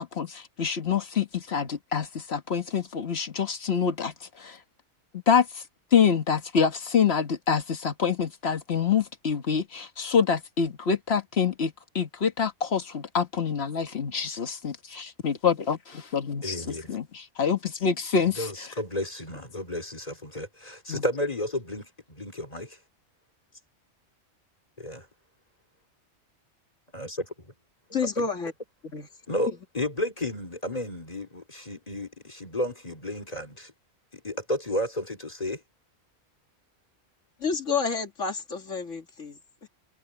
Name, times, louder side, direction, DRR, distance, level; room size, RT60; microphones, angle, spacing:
voice 1, 0.0-4.6 5.3-5.6 5.9-18.5 20.9-21.0, left 6 dB, 55° left, 1.6 m, -26 dB
voice 2, 16.4-17.0 18.2-22.8 24.8-25.1 26.9-27.5 28.2-28.3 29.3-33.7 34.1-35.6, left 1 dB, 30° left, 3.0 m, -32 dB
voice 3, 27.9-28.5 28.8-29.1 37.4-39.7, left 5 dB, 80° left, 2.5 m, -30 dB
omnidirectional pair, 1.3 m